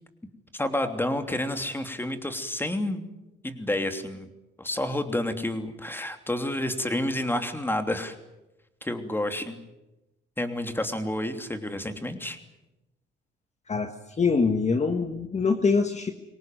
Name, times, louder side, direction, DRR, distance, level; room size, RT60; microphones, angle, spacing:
voice 1, 0.5-3.0 3.4-4.3 4.6-8.2 8.8-9.6 10.4-12.4, left 1 dB, 10° left, 7 dB, 3.1 m, -29 dB
voice 2, 14.2-16.1, left 4 dB, 35° left, 7 dB, 1.7 m, -24 dB
24.5 x 18.5 x 9.3 m, 0.95 s
cardioid pair, 90°, 20 cm